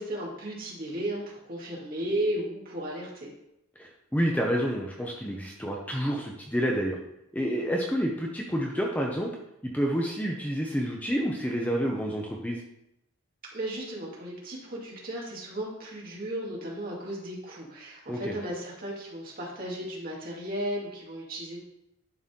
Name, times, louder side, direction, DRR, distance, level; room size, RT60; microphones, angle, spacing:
voice 1, 0.0-3.3 13.5-21.6, right 1 dB, 45° right, -4 dB, 2.3 m, -35 dB
voice 2, 3.8-7.0 7.3-9.3 9.6-12.6 18.1-18.3, equal, 5° left, -1 dB, 0.7 m, -29 dB
11.0 x 4.2 x 3.7 m, 0.83 s
head